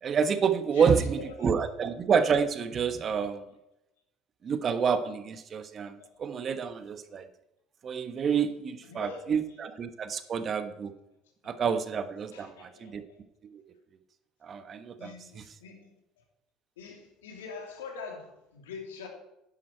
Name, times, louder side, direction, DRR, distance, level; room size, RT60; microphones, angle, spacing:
voice 1, 0.0-3.5 4.4-7.3 7.8-10.9 11.4-13.0 13.5-13.6 14.4-15.4, right 6 dB, 40° right, 10 dB, 1.2 m, -28 dB
voice 2, 0.7-1.3 3.2-3.3 6.0-6.2 8.8-9.4 10.1-10.3 12.3-13.2 15.0-15.9 16.8-19.1, left 5 dB, 90° left, 2 dB, 3.0 m, -44 dB
11.0 x 10.5 x 4.5 m, 0.89 s
hypercardioid pair, 75°, 0 cm